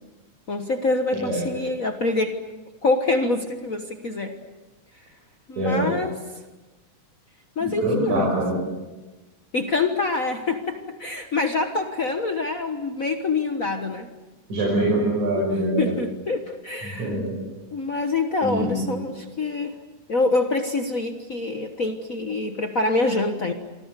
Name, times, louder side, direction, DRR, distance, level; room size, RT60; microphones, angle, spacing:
voice 1, 0.5-2.4 2.8-4.3 5.5-6.1 7.6-8.3 9.5-14.1 15.3-17.1 17.7-19.8 20.1-23.5, left 3 dB, 70° left, 5 dB, 0.7 m, -25 dB
voice 2, 1.1-1.5 5.6-5.9 7.6-8.6 14.5-15.9 16.8-17.4 18.4-18.8, right 1 dB, 65° right, -1 dB, 7.0 m, -24 dB
28.5 x 25.0 x 6.7 m, 1.2 s
omnidirectional pair, 3.7 m